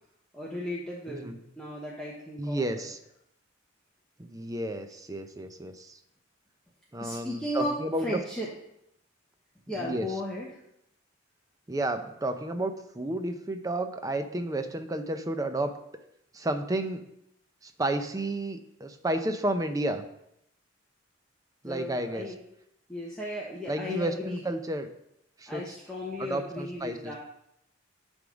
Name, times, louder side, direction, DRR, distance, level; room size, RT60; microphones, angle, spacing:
voice 1, 0.3-2.9 7.0-8.5 9.7-10.5 21.6-22.4 22.9-24.4 25.5-27.1, left 1 dB, 5° left, -6 dB, 1.0 m, -35 dB
voice 2, 1.1-1.4 2.4-3.0 4.2-6.0 6.9-8.2 9.8-10.1 11.7-15.8 16.3-17.0 17.6-20.0 21.6-22.3 23.7-24.9 25.4-25.6 26.2-27.1, right 1 dB, 15° right, 8 dB, 0.5 m, -31 dB
10.0 x 3.6 x 5.1 m, 0.79 s
head